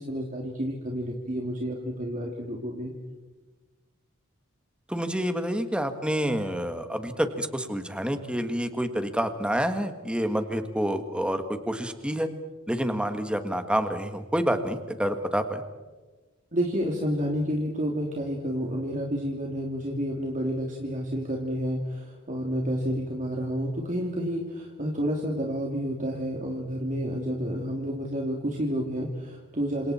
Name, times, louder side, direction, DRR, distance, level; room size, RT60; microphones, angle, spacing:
voice 1, 0.0-2.9 16.5-29.9, equal, 40° right, -1 dB, 3.0 m, -30 dB
voice 2, 4.9-12.3 12.7-15.6, equal, 5° right, 7 dB, 1.8 m, -28 dB
29.5 x 27.0 x 4.5 m, 1.3 s
head